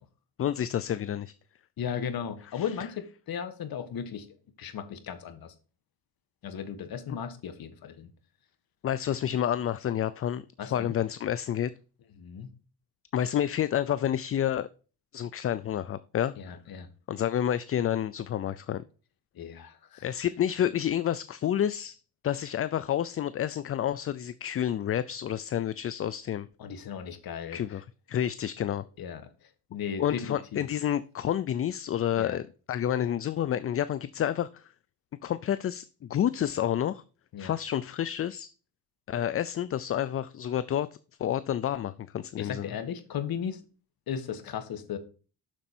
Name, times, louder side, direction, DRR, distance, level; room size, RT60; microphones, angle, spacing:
voice 1, 0.4-1.3 2.5-2.6 8.8-10.4 10.7-11.7 13.1-14.7 15.1-16.6 17.1-18.8 20.0-22.0 22.2-26.5 27.5-28.8 30.0-34.7 35.2-37.0 37.4-38.5 39.1-40.9 41.2-42.7, left 10 dB, 35° left, 16 dB, 0.4 m, -29 dB
voice 2, 1.8-4.3 4.6-5.5 6.4-8.1 10.6-10.9 12.2-12.5 16.4-16.9 19.3-20.0 26.6-27.8 29.0-30.7 32.1-32.4 37.3-37.5 42.4-43.6 44.1-45.0, left 8 dB, 60° left, 10 dB, 1.7 m, -36 dB
7.4 x 6.5 x 4.3 m, 0.37 s
cardioid pair, 100°, 40 cm